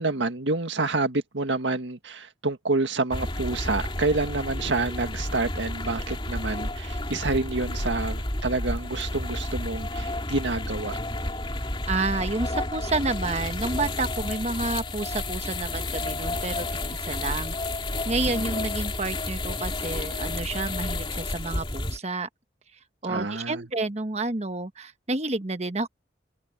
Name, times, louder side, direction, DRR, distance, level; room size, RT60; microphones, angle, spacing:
voice 1, 0.0-11.0 18.3-18.6 23.1-23.6, right 3 dB, 75° right, 1.8 m, -28 dB
sound 1, 3.1-22.0, left 2 dB, 25° left, 2.9 m, -31 dB
voice 2, 11.9-17.6 18.0-22.3 23.0-25.9, right 3 dB, 35° right, 1.2 m, -30 dB
head